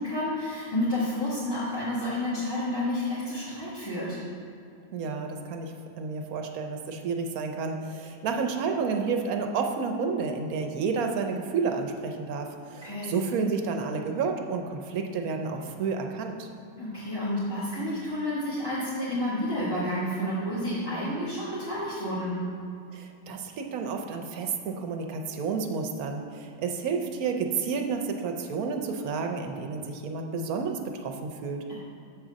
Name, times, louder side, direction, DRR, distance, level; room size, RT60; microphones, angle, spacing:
voice 1, 0.0-4.2 12.8-13.2 16.8-22.3 31.7-31.8, left 1 dB, 15° left, -12 dB, 1.3 m, -30 dB
voice 2, 4.9-16.5 22.9-31.6, right 5 dB, 70° right, 4 dB, 1.1 m, -30 dB
7.1 x 3.9 x 6.2 m, 2.5 s
omnidirectional pair, 1.7 m